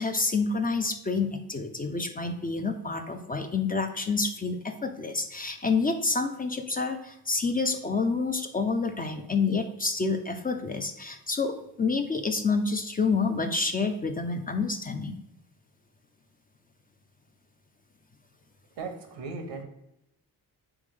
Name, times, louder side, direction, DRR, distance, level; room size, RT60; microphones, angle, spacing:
voice 1, 0.0-15.2, left 4 dB, 20° left, 6 dB, 0.4 m, -28 dB
voice 2, 18.8-19.6, right 4 dB, 80° right, 5 dB, 0.9 m, -37 dB
3.5 x 3.4 x 3.2 m, 0.85 s
cardioid pair, 70°, 41 cm